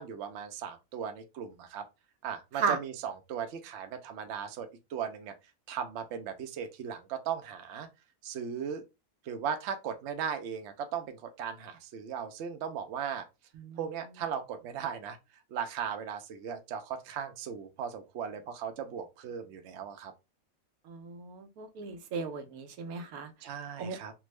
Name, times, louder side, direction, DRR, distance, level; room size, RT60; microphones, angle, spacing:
voice 1, 0.0-1.9 2.2-5.3 5.7-7.9 8.2-8.8 9.2-13.3 13.8-15.2 15.5-20.1 23.4-24.1, right 7 dB, 65° right, 0.8 m, -37 dB
voice 2, 20.9-23.3 23.8-24.0, right 5 dB, 85° right, 1.1 m, -35 dB
3.4 x 2.1 x 3.1 m
omnidirectional pair, 1.5 m